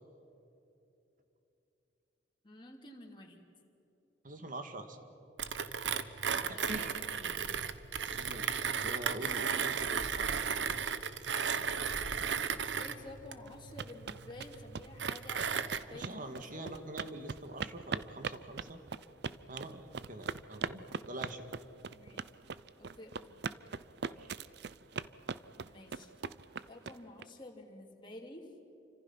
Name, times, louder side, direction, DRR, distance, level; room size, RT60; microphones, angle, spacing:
voice 1, 2.4-3.4 6.3-7.5 12.5-16.7 21.9-22.3 22.8-23.4 25.6-26.1 26.7-28.4, left 1 dB, 25° left, -1 dB, 3.1 m, -51 dB
voice 2, 4.2-5.0 6.5-7.0 8.1-10.5 15.9-18.8 19.5-21.5 24.0-24.3, right 1 dB, 50° right, 7 dB, 2.1 m, -44 dB
Mechanisms, 5.4-15.8, right 6 dB, 80° right, 1.0 m, -35 dB
sound 1, 13.5-27.2, right 5 dB, 65° right, 0.6 m, -41 dB
29.0 x 25.5 x 6.0 m, 2.9 s
head